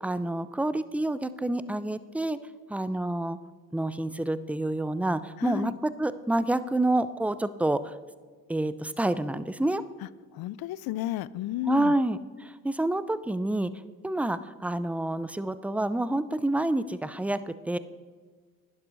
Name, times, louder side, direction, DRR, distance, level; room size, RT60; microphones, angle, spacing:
voice 1, 0.0-2.4 2.7-3.4 3.7-7.9 8.5-9.8 11.7-13.7 14.0-17.8, right 1 dB, 5° right, 14 dB, 0.5 m, -28 dB
voice 2, 5.4-5.7 10.3-11.9, left 14 dB, 70° left, 20 dB, 0.5 m, -32 dB
11.0 x 10.5 x 4.0 m, 1.5 s
supercardioid pair, 60°, 38 cm